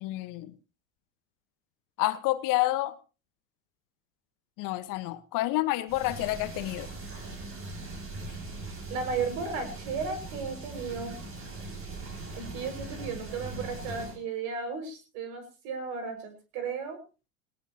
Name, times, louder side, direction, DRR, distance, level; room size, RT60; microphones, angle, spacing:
voice 1, 0.0-0.5 2.0-2.9 4.6-6.9, left 17 dB, 50° left, 12 dB, 1.5 m, -29 dB
sound 1, 5.9-14.2, right 3 dB, 30° right, 5.8 m, -40 dB
voice 2, 8.9-11.2 12.4-17.0, right 5 dB, 55° right, 8 dB, 6.2 m, -34 dB
18.5 x 18.5 x 3.0 m, 0.33 s
hypercardioid pair, 90°, 42 cm